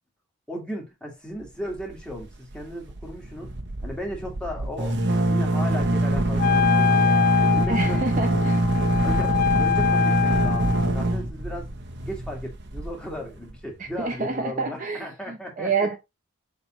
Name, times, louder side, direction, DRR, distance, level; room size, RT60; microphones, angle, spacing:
voice 1, 0.5-3.5 3.8-5.0 5.3-8.0 9.0-11.7 12.0-15.9, equal, 5° left, 2.0 m, -36 dB
sound 1, 1.7-2.2 2.5-2.6 2.9-13.6, right 1 dB, 55° right, 1.0 m, -24 dB
Wind instrument woodwind instrument, 6.4-10.9, left 9 dB, 40° left, 0.3 m, -24 dB
voice 2, 7.7-8.6 13.8-16.0, right 4 dB, 35° right, 0.7 m, -28 dB
7.1 x 3.5 x 4.3 m
head